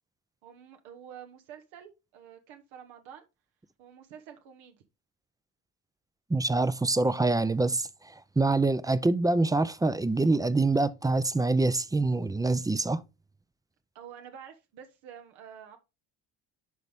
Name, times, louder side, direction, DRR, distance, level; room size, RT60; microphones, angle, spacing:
voice 1, 0.4-3.2 3.8-4.8 13.9-15.8, right 8 dB, 80° right, 1.2 m, -48 dB
voice 2, 6.3-13.0, right 2 dB, 10° right, 0.4 m, -25 dB
11.0 x 4.0 x 3.5 m
supercardioid pair, 80°, 46 cm